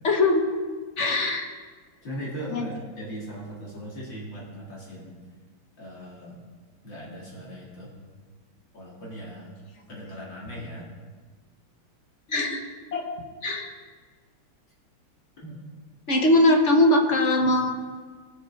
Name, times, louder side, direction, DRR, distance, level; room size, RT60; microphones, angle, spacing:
voice 1, 0.0-0.4 1.0-1.5 2.5-2.7 12.3-12.6 12.9-13.1 13.4-13.7 16.1-17.7, left 2 dB, 40° left, 3 dB, 1.2 m, -21 dB
voice 2, 2.0-5.2 5.8-6.5 6.8-7.9 8.7-9.5 9.9-10.9 15.4-15.6, equal, 65° left, -5 dB, 3.3 m, -38 dB
19.0 x 7.4 x 4.7 m, 1.5 s
omnidirectional pair, 2.2 m